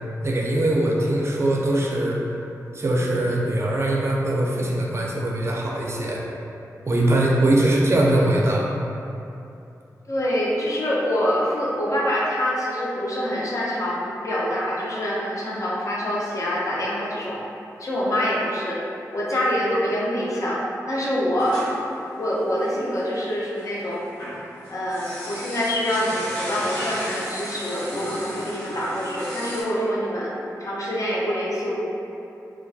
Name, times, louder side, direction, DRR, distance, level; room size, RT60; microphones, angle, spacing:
voice 1, 0.2-2.2 2.7-6.2 6.9-8.7, right 1 dB, 40° right, -3 dB, 0.4 m, -21 dB
voice 2, 10.1-17.4 17.8-18.8 19.1-21.6 22.2-24.0 24.7-30.3 30.6-31.8, equal, 50° left, -6 dB, 0.6 m, -25 dB
sound 1, 21.4-23.2 23.6-29.6, equal, 85° left, 0.9 m, -35 dB
2.2 x 2.2 x 2.6 m, 2.7 s
cardioid pair, 40°, 7 cm